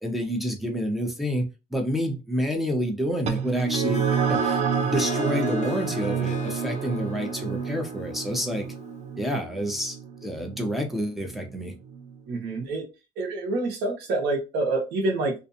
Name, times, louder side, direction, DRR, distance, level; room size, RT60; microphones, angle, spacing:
voice 1, 0.0-8.7 9.2-11.7, equal, ahead, 0.6 m, -29 dB
sound 1, 3.3-12.1, right 6 dB, 40° right, 0.4 m, -29 dB
Harp, 3.5-9.0, left 7 dB, 45° left, 0.4 m, -39 dB
voice 2, 12.3-12.8 13.2-15.3, right 2 dB, 85° right, 1.0 m, -27 dB
2.5 x 2.3 x 2.6 m
cardioid pair, 110°, 17 cm